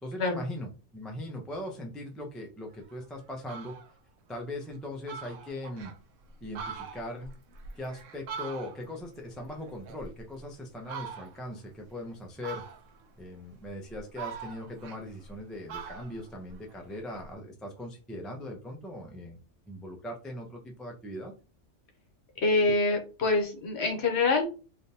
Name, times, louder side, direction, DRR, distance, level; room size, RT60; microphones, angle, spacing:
voice 1, 0.0-3.8 4.3-5.9 6.4-7.3 7.8-12.6 13.2-19.4 19.7-21.3, left 1 dB, ahead, 1 dB, 0.3 m, -40 dB
Fowl, 2.8-2.9 3.3-3.9 4.4-4.5 4.8-4.9 5.1-6.0 6.4-9.0 9.4-10.4 10.8-11.5 12.4-13.1 13.6-15.4 15.7-17.3, right 6 dB, 85° right, 1.0 m, -42 dB
voice 2, 22.4-24.4, left 3 dB, 65° left, 3 dB, 1.1 m, -25 dB
3.4 x 2.7 x 2.7 m, 0.34 s
omnidirectional pair, 1.3 m